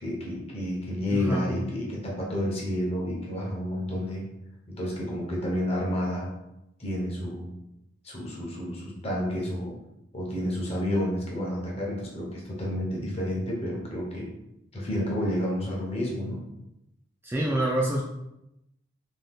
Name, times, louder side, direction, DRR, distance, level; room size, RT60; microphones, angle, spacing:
voice 1, 0.0-4.2 4.7-6.3 6.8-7.5 8.0-9.7 10.1-14.3 14.7-16.5, left 1 dB, 30° left, -2 dB, 0.7 m, -30 dB
voice 2, 1.1-1.5 17.2-18.0, right 1 dB, 10° right, -4 dB, 0.3 m, -26 dB
2.7 x 2.3 x 3.4 m, 0.87 s
head